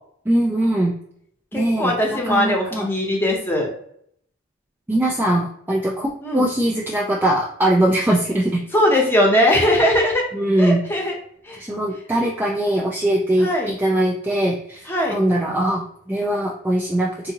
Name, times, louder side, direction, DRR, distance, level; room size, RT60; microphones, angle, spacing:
voice 1, 0.3-0.9 1.5-2.9 4.9-8.6 10.3-10.8 11.6-17.3, right 1 dB, 10° right, -2 dB, 0.3 m, -21 dB
voice 2, 1.5-3.7 6.2-6.5 8.7-10.2 10.6-11.2 11.4-11.6 13.4-13.7 14.9-15.2, left 1 dB, 10° left, -1 dB, 0.8 m, -20 dB
3.7 x 2.6 x 2.9 m, 0.67 s
head